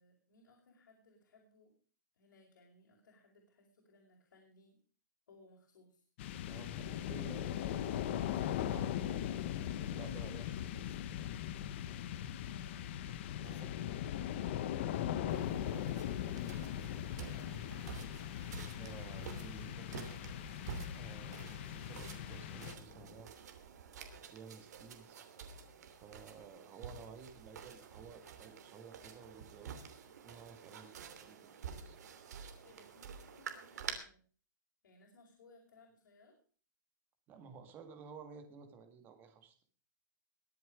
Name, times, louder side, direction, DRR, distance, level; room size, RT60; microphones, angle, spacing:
voice 1, 0.0-1.7 2.2-4.8 5.3-6.0 12.4-13.1 17.3-17.9 32.6-34.2 34.8-36.4, left 2 dB, 80° left, -2 dB, 5.7 m, -63 dB
sound 1, 6.2-23.1, left 11 dB, 35° left, 1.0 m, -39 dB
voice 2, 6.5-8.2 8.4-9.3 9.6-10.9 13.4-13.8 15.3-16.1 18.7-20.0 20.9-23.3 24.3-25.3 26.0-29.8 30.2-32.1 37.3-39.5, right 6 dB, 20° right, 7 dB, 1.8 m, -54 dB
sound 2, 15.3-33.9, right 7 dB, 60° right, 2.9 m, -50 dB
22.0 x 7.8 x 5.0 m, 0.41 s
hypercardioid pair, 170°, 10 cm